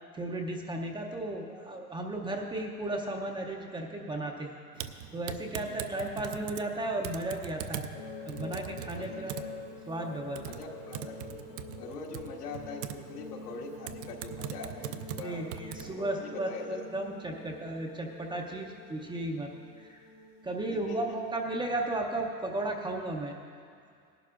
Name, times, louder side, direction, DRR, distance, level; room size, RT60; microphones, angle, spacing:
voice 1, 0.1-7.9 8.3-9.4 9.9-10.4 15.2-19.5 19.8-20.0 20.4-23.4, right 2 dB, 10° right, 1 dB, 0.6 m, -35 dB
Typing, 4.8-15.9, right 10 dB, 50° right, 0.6 m, -42 dB
voice 2, 5.6-5.9 9.0-9.5 10.4-11.4 11.8-15.5 15.8-16.8 20.6-21.2, left 4 dB, 75° left, -1 dB, 2.0 m, -43 dB
sound 1, 7.9-21.7, left 3 dB, 40° left, 0.8 m, -46 dB
18.0 x 11.5 x 2.4 m, 2.3 s
hypercardioid pair, 110°, 47 cm